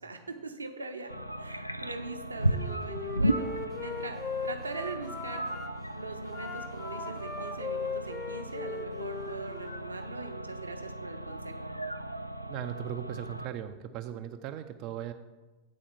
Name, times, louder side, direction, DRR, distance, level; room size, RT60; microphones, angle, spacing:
voice 1, 0.0-1.1 1.4-3.5 3.8-5.4 5.9-11.7, right 3 dB, 80° right, 6 dB, 0.7 m, -41 dB
sound 1, 1.1-13.5, right 1 dB, 90° left, 0.3 m, -36 dB
Wind instrument woodwind instrument, 2.4-5.7 6.3-9.8, left 4 dB, 30° left, 0.9 m, -38 dB
voice 2, 12.5-15.1, right 10 dB, 40° right, 7 dB, 0.4 m, -38 dB
8.5 x 4.2 x 5.8 m, 1.2 s
figure-of-eight pair, 90°, 0 cm